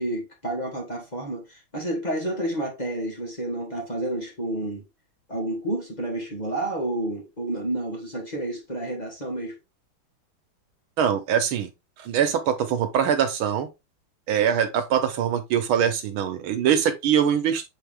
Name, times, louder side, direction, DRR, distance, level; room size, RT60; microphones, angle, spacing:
voice 1, 0.0-4.8 5.3-9.6, right 1 dB, 20° left, 1.8 m, -30 dB
voice 2, 11.0-11.7 12.0-13.7 14.3-17.6, right 8 dB, 85° right, 1.9 m, -23 dB
6.9 x 3.7 x 3.6 m
omnidirectional pair, 2.2 m